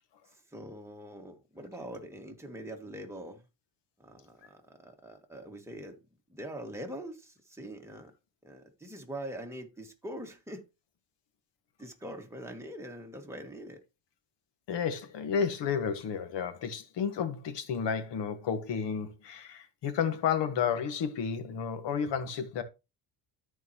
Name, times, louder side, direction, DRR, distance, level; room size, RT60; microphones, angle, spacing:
voice 1, 0.5-3.4 4.0-6.0 6.3-8.1 8.4-10.6 11.8-13.8, right 1 dB, 5° right, 2.1 m, -43 dB
voice 2, 14.7-22.6, left 7 dB, 65° left, 1.6 m, -31 dB
13.5 x 4.6 x 3.0 m
cardioid pair, 85°, 46 cm